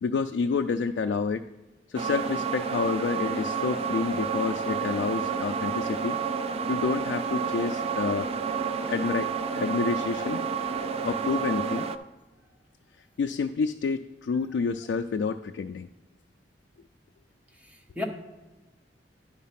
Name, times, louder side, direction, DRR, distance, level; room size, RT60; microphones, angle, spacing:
voice 1, 0.0-1.4 1.9-6.2 6.7-8.3 8.9-10.4 11.0-11.9 13.2-15.9, left 5 dB, 75° left, 0.3 m, -29 dB
sound 1, 1.9-12.0, right 6 dB, 35° right, 0.3 m, -30 dB
voice 2, 17.6-18.0, left 3 dB, 10° right, 0.8 m, -36 dB
10.0 x 4.0 x 5.7 m
head